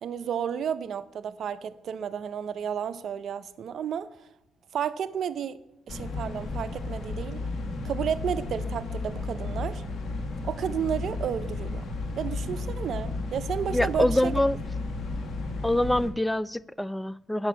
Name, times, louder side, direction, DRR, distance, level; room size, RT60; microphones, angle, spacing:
voice 1, 0.0-4.1 4.7-5.6 5.9-7.4 7.8-9.8 10.4-11.9 12.2-14.3, right 8 dB, 65° right, 0.5 m, -32 dB
sound 1, 5.9-16.1, left 3 dB, 55° left, 1.6 m, -33 dB
voice 2, 13.7-14.6 15.6-17.5, left 1 dB, 5° left, 0.3 m, -25 dB
8.0 x 5.9 x 7.5 m
cardioid pair, 90°, 0 cm